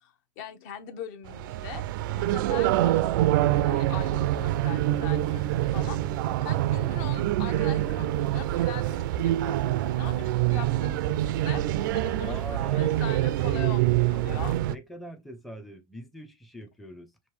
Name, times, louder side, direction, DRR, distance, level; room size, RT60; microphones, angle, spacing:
voice 1, 0.0-1.8 2.1-6.0 6.4-14.6, left 9 dB, 55° left, 0.8 m, -41 dB
sound 1, 1.3-14.7, right 14 dB, 70° right, 0.4 m, -25 dB
voice 2, 12.2-12.9 14.6-17.1, right 1 dB, ahead, 0.5 m, -42 dB
5.3 x 2.6 x 3.1 m
supercardioid pair, 160°, 11 cm